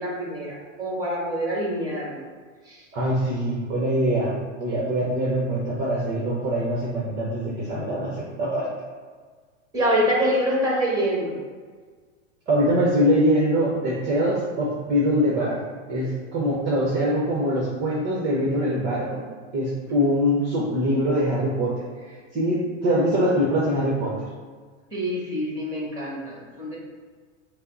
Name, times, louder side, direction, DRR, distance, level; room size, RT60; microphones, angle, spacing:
voice 1, 0.0-2.2 2.7-2.8 9.7-11.4 24.9-26.8, equal, 10° right, -4 dB, 1.4 m, -25 dB
voice 2, 2.9-8.7 12.5-15.6 15.9-19.2 19.5-21.8 22.3-24.2, equal, 25° right, -5 dB, 0.9 m, -23 dB
5.4 x 2.0 x 3.9 m, 1.5 s
hypercardioid pair, 125°, 38 cm